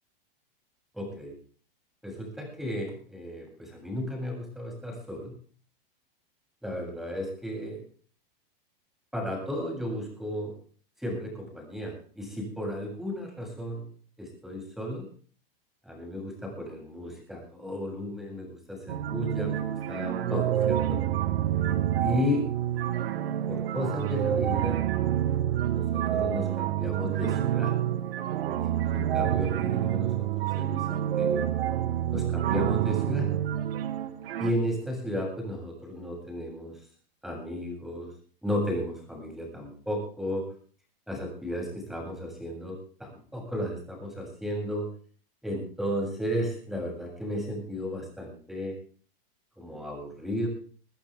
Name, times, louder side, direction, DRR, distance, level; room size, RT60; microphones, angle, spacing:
voice 1, 0.9-1.3 2.0-5.3 6.6-7.8 9.1-10.5 11.0-13.8 14.2-15.1 15.9-21.0 22.0-22.5 23.5-24.8 25.7-27.7 28.6-31.5 32.1-33.3 34.4-36.8 37.2-38.1 38.4-40.5 41.1-44.9 45.4-48.8 49.6-50.5, left 1 dB, ahead, 0 dB, 7.7 m, -34 dB
sound 1, 18.9-34.5, right 11 dB, 75° right, 1.8 m, -28 dB
23.5 x 14.5 x 3.6 m, 0.43 s
supercardioid pair, 140°, 29 cm